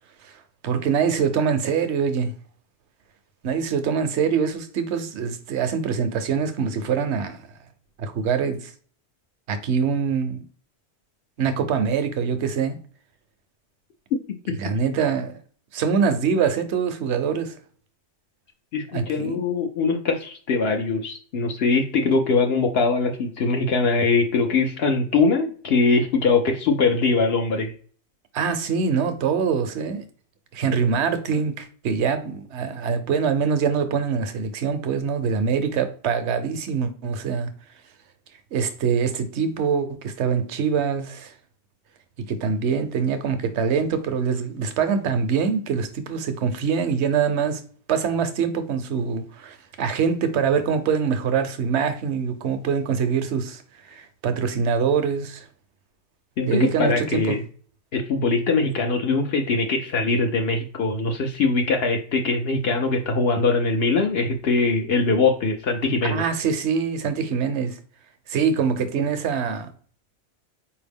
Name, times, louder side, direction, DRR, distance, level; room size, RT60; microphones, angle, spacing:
voice 1, 0.6-2.3 3.4-7.4 8.0-8.7 9.5-10.4 11.4-12.8 14.5-15.4 15.7-17.5 18.9-19.4 28.3-30.0 30.5-37.5 38.5-41.3 42.3-47.6 47.9-53.6 53.9-55.4 56.5-57.4 66.0-67.8 68.3-69.7, right 6 dB, 75° right, 1.0 m, -24 dB
voice 2, 18.7-27.7 56.4-57.4 57.9-66.2, left 4 dB, 65° left, 0.8 m, -22 dB
4.6 x 2.7 x 3.4 m
omnidirectional pair, 1.2 m